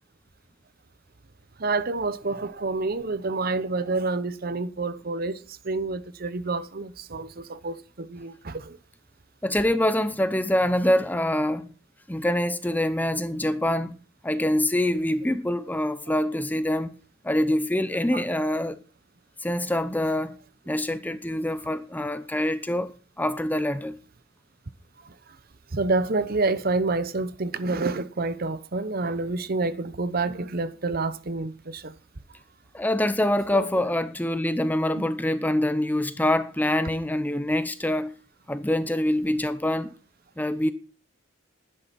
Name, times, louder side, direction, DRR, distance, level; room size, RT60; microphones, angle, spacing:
voice 1, 1.6-8.8 18.1-18.2 25.0-25.4 25.7-31.9 33.5-33.6 35.0-35.1, right 3 dB, 50° right, 0.9 m, -28 dB
voice 2, 9.4-11.7 12.1-17.0 17.2-18.8 19.4-20.3 20.7-22.9 23.2-24.0 32.7-38.1 38.5-39.9 40.4-40.7, left 1 dB, 10° left, 0.7 m, -25 dB
11.0 x 10.5 x 5.9 m
head